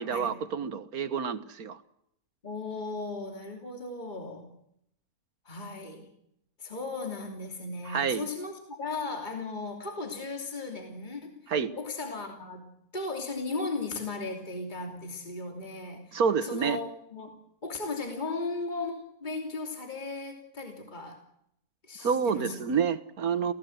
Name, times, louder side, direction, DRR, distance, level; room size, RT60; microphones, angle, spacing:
voice 1, 0.0-1.8 7.9-8.3 11.5-11.7 16.1-16.8 22.0-23.5, right 6 dB, 85° right, 13 dB, 1.8 m, -28 dB
voice 2, 2.4-4.6 5.4-6.1 6.6-17.3 17.6-21.2 21.8-22.6, left 3 dB, 30° left, 3 dB, 3.1 m, -36 dB
28.5 x 17.5 x 7.8 m, 0.76 s
omnidirectional pair, 1.5 m